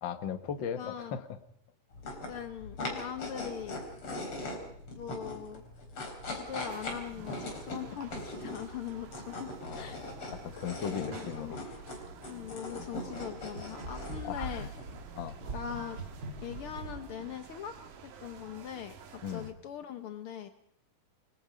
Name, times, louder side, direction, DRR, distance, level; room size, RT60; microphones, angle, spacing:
voice 1, 0.0-1.4 9.6-11.9 14.2-14.7 15.1-15.4 19.2-19.5, left 8 dB, 60° left, 9 dB, 1.2 m, -38 dB
voice 2, 0.8-1.2 2.1-3.8 4.9-5.6 6.3-9.5 9.7-10.0 10.8-11.5 12.3-14.7 15.5-16.0 16.4-17.8 18.0-20.5, left 9 dB, 80° left, 8 dB, 1.2 m, -41 dB
sound 1, 1.9-17.3, left 2 dB, 40° left, 4.9 m, -42 dB
sound 2, 6.5-19.5, right 5 dB, 75° right, 3.4 m, -51 dB
sound 3, 12.8-17.1, right 3 dB, 35° right, 2.3 m, -43 dB
29.0 x 20.0 x 5.1 m, 0.68 s
omnidirectional pair, 3.9 m